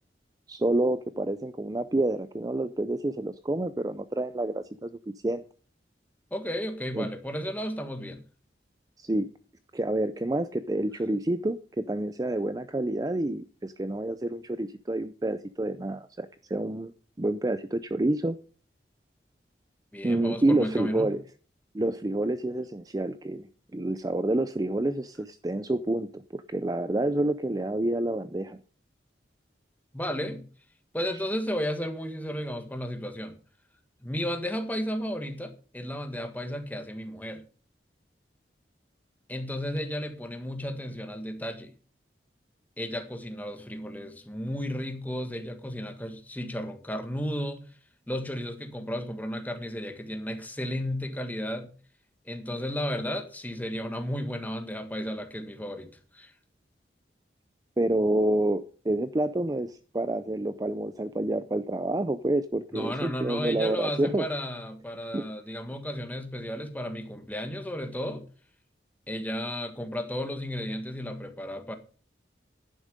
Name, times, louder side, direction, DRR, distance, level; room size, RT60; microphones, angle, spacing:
voice 1, 0.5-5.0 5.2-5.4 6.9-7.1 9.0-9.3 9.7-16.9 17.2-18.4 20.0-21.2 21.7-28.6 57.8-64.3 65.1-65.2, right 1 dB, 20° right, 0.5 m, -28 dB
voice 2, 6.3-8.2 19.9-21.1 29.9-30.4 30.9-33.4 34.0-37.4 39.3-41.7 42.8-47.7 48.1-51.7 52.2-56.3 62.7-68.2 69.1-71.7, equal, 10° left, 1.6 m, -33 dB
11.0 x 10.0 x 5.1 m
head